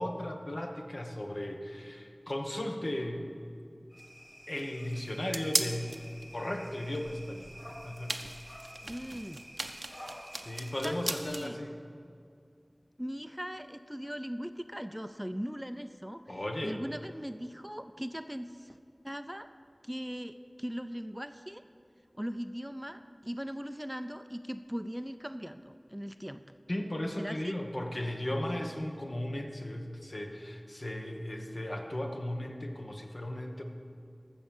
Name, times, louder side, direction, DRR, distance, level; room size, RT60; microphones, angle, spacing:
voice 1, 0.0-3.3 4.5-5.9 6.3-7.5 7.8-8.3 10.4-11.8 16.3-16.8 26.7-33.6, left 1 dB, 60° left, 3 dB, 1.2 m, -36 dB
sound 1, 3.9-10.8, equal, 30° left, 2.4 m, -50 dB
sound 2, 4.0-11.5, right 2 dB, 75° right, 0.6 m, -39 dB
voice 2, 8.8-9.4 10.8-11.6 13.0-18.8 19.0-19.5 19.8-21.6 22.1-26.4 27.2-27.6, equal, 10° right, 10 dB, 0.4 m, -39 dB
14.5 x 6.3 x 7.1 m, 2.3 s
wide cardioid pair, 45°, 0 cm